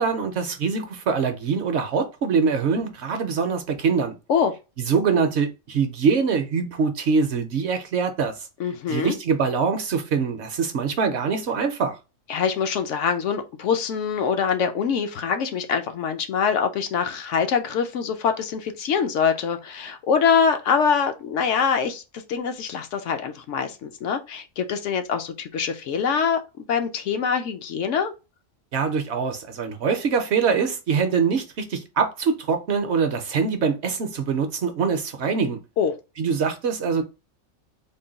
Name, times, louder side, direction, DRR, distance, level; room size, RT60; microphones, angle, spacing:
voice 1, 0.0-4.1 4.9-8.5 8.9-12.0 28.7-35.6 36.2-37.0, right 5 dB, 65° right, 0.8 m, -24 dB
voice 2, 8.6-9.1 12.3-28.1 35.8-35.9, left 6 dB, 70° left, 0.8 m, -24 dB
3.7 x 2.2 x 3.8 m
omnidirectional pair, 1.4 m